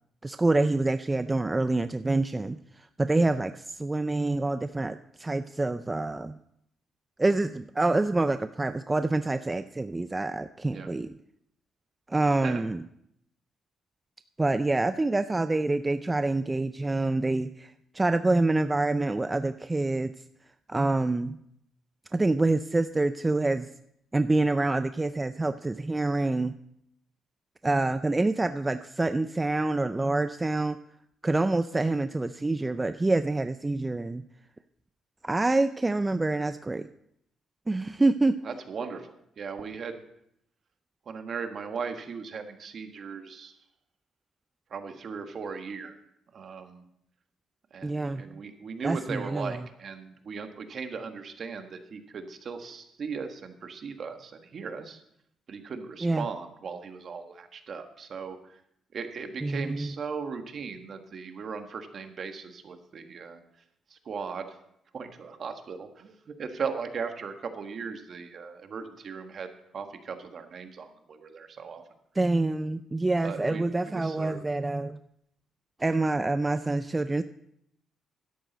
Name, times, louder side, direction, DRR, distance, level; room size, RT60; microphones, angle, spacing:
voice 1, 0.2-6.4 7.2-11.2 12.1-12.8 14.4-20.1 20.7-21.4 22.1-23.7 24.1-26.6 27.6-30.8 31.2-34.2 35.2-36.9 37.7-38.4 47.8-48.4 48.8-49.6 56.0-56.3 59.4-59.9 72.2-75.0 75.8-77.2, right 2 dB, 20° right, 11 dB, 0.4 m, -26 dB
voice 2, 38.4-39.1 39.4-40.0 41.1-43.6 44.7-46.0 46.3-46.8 47.7-55.0 55.5-58.6 58.9-63.4 63.9-64.6 64.9-69.5 69.7-71.8 73.2-74.5, right 5 dB, 50° right, 7 dB, 1.4 m, -38 dB
12.5 x 11.0 x 4.0 m, 0.74 s
cardioid pair, 90°, 0 cm